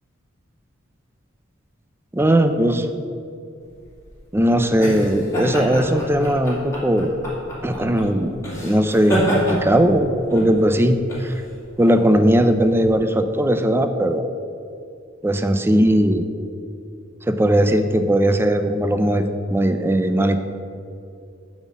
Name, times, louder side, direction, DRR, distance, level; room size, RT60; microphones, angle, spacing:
voice 1, 2.1-2.9 4.3-7.1 7.6-8.4 8.6-11.3 11.8-14.3 15.2-16.3 17.3-19.3 19.5-20.4, right 1 dB, 10° right, 8 dB, 0.5 m, -18 dB
sound 1, 3.7-12.9, equal, 15° left, 2.3 m, -28 dB
8.9 x 4.2 x 7.3 m, 2.5 s
head